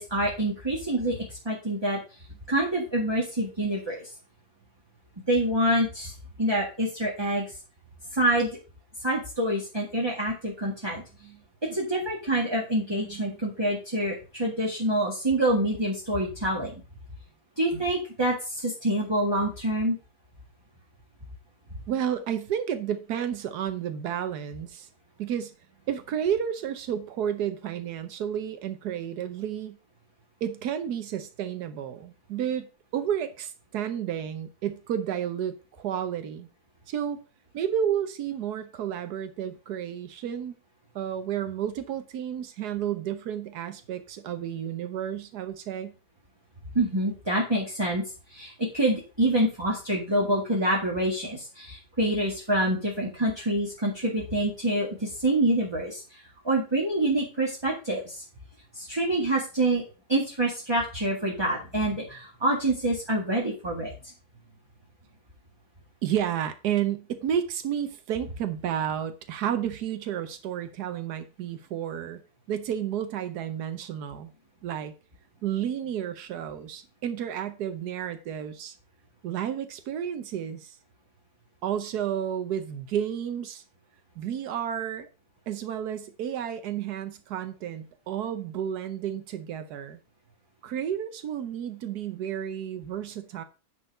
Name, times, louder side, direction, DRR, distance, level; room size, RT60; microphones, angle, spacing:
voice 1, 0.0-2.0 2.5-4.1 5.3-6.1 6.4-7.5 8.1-8.5 9.0-11.0 11.6-16.7 17.6-20.0 46.8-48.0 48.3-58.2 58.7-59.8 60.1-63.9, right 1 dB, 15° right, 1.8 m, -26 dB
voice 2, 12.9-13.4 21.9-24.9 25.2-25.5 25.9-29.8 30.4-36.5 36.9-37.2 37.5-40.5 40.9-45.9 66.0-72.2 72.5-74.3 74.6-74.9 75.4-78.7 79.2-80.8 81.6-83.6 84.2-85.1 85.5-90.0 90.6-93.4, right 9 dB, 90° right, 1.4 m, -31 dB
9.7 x 4.7 x 5.3 m
omnidirectional pair, 1.6 m